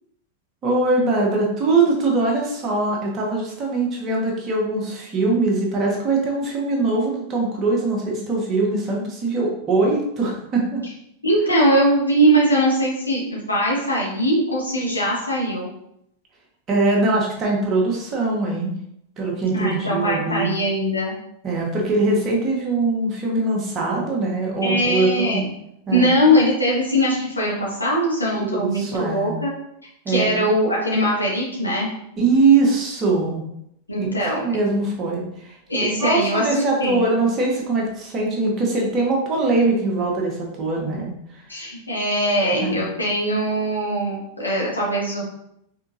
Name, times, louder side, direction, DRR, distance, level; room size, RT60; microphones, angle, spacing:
voice 1, 0.6-10.8 16.7-18.7 19.2-20.5 21.4-25.4 25.9-26.2 28.4-29.3 30.0-30.4 32.2-33.4 34.0-34.1 34.3-35.6 36.0-41.7 42.6-42.9, right 3 dB, 30° right, -2 dB, 1.4 m, -22 dB
voice 2, 11.2-15.7 19.5-21.1 24.6-25.5 25.9-29.5 30.1-31.9 33.9-34.4 35.7-36.4 36.8-37.0 41.5-45.2, equal, 85° left, -5 dB, 1.6 m, -21 dB
5.4 x 3.7 x 2.6 m, 0.76 s
figure-of-eight pair, 90°, 0 cm